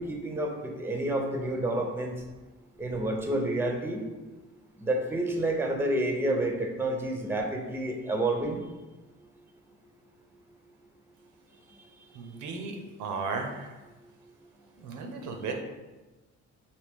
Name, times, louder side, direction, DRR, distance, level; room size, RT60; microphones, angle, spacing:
voice 1, 0.0-2.2 2.8-4.1 4.8-8.6, right 1 dB, 10° right, 2 dB, 0.6 m, -29 dB
voice 2, 12.1-13.7 14.8-15.5, right 4 dB, 80° right, 4 dB, 0.7 m, -35 dB
4.3 x 2.7 x 3.5 m, 1.2 s
cardioid pair, 90°, 30 cm